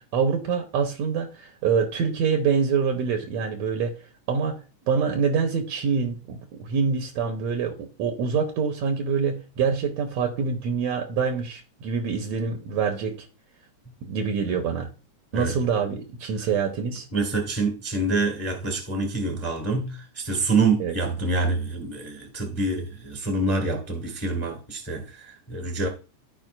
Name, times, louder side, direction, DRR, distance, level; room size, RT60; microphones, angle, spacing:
voice 1, 0.1-3.9 4.3-13.3 14.0-14.9 15.3-17.1 20.8-21.0, right 6 dB, 70° right, 2.1 m, -25 dB
voice 2, 17.1-25.9, right 3 dB, 10° left, 1.1 m, -26 dB
13.5 x 5.1 x 2.5 m
omnidirectional pair, 3.4 m